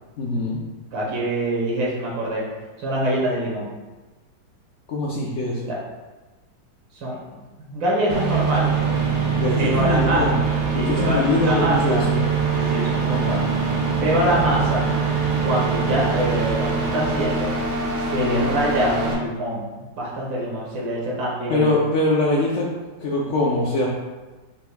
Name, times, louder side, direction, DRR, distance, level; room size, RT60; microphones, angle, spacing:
voice 1, 0.2-0.6 4.9-5.7 9.4-10.4 10.7-12.2 18.2-18.5 21.5-22.7 23.0-23.9, left 2 dB, 75° left, -4 dB, 0.7 m, -22 dB
voice 2, 0.9-2.4 2.8-3.7 5.6-5.8 6.9-7.2 7.6-8.7 9.6-10.2 10.7-12.1 12.5-13.5 14.0-14.9 15.4-17.5 17.9-19.7 20.0-21.7, right 1 dB, 90° right, -4 dB, 2.0 m, -24 dB
sound 1, 8.1-19.1, right 5 dB, 65° right, 1.3 m, -23 dB
5.1 x 4.3 x 2.2 m, 1.2 s
omnidirectional pair, 2.0 m